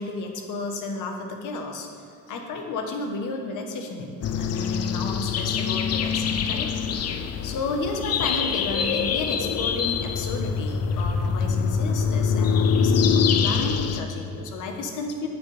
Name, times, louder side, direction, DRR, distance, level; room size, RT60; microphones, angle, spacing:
voice 1, 0.0-1.9 2.3-7.0 7.4-13.1 13.4-15.3, left 3 dB, 80° left, 3 dB, 1.1 m, -32 dB
sound 1, 4.2-14.0, left 6 dB, 55° left, 0.5 m, -24 dB
9.1 x 6.8 x 3.3 m, 2.6 s
cardioid pair, 90°, 30 cm